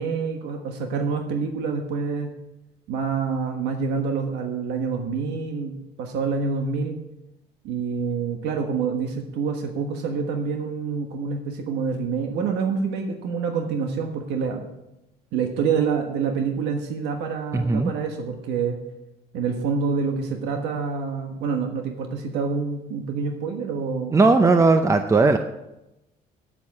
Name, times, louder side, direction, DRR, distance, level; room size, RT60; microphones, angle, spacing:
voice 1, 0.0-2.3 2.9-7.0 7.6-14.7 15.3-18.8 19.3-24.2, right 5 dB, 90° right, 4 dB, 1.3 m, -27 dB
voice 2, 17.5-17.9 24.1-25.4, right 3 dB, 20° right, 7 dB, 0.6 m, -17 dB
9.1 x 8.3 x 7.5 m, 0.94 s
cardioid pair, 110°, 17 cm